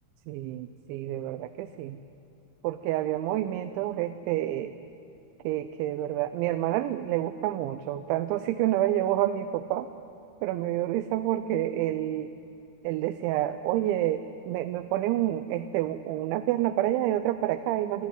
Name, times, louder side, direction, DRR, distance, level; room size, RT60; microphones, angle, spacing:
voice 1, 0.3-2.0 2.6-4.8 5.4-9.9 10.4-12.3 12.8-18.1, right 13 dB, 85° right, 10 dB, 3.0 m, -28 dB
27.5 x 11.5 x 9.7 m, 2.6 s
omnidirectional pair, 5.3 m